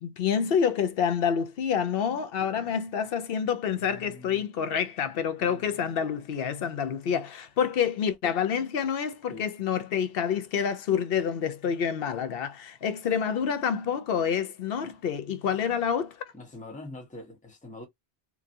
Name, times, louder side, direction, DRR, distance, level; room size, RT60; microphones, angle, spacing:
voice 1, 0.0-16.1, left 7 dB, 65° left, 0.8 m, -28 dB
voice 2, 2.4-2.9 3.7-4.4 5.4-6.0 9.3-9.5 16.3-17.9, left 2 dB, 10° left, 0.8 m, -45 dB
2.8 x 2.3 x 2.5 m
omnidirectional pair, 1.1 m